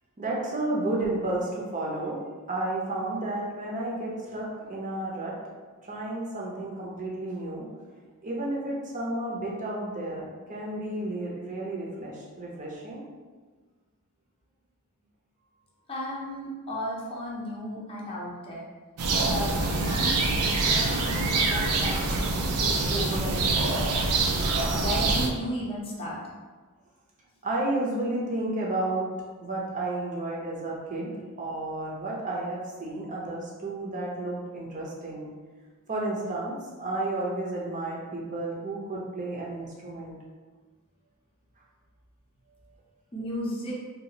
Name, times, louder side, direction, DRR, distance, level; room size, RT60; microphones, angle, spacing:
voice 1, 0.2-2.2 2.5-5.3 5.9-7.6 8.2-13.0 24.4-24.8 27.4-29.1 29.4-31.1 31.4-35.3 35.9-40.1, right 2 dB, 35° right, -3 dB, 0.6 m, -32 dB
voice 2, 15.9-18.6 19.2-23.7 24.7-26.2 43.1-43.7, equal, 25° left, -6 dB, 0.6 m, -34 dB
sound 1, 19.0-25.3, right 3 dB, 80° right, 0.4 m, -25 dB
2.6 x 2.4 x 2.8 m, 1.4 s
head